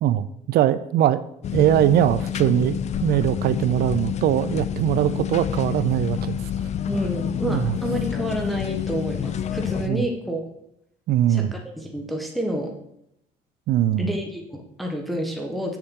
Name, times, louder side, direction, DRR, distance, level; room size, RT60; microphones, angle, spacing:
voice 1, 0.0-1.2 1.5-6.4 7.4-7.8 9.9-10.1 11.1-11.5 13.7-14.1, right 11 dB, 65° right, 15 dB, 0.4 m, -21 dB
sound 1, 1.4-9.9, left 9 dB, 40° left, 0.5 m, -28 dB
voice 2, 6.9-10.5 11.3-12.7 14.0-15.8, equal, ahead, 1 dB, 1.2 m, -29 dB
7.8 x 7.1 x 3.7 m, 0.78 s
cardioid pair, 110°, 17 cm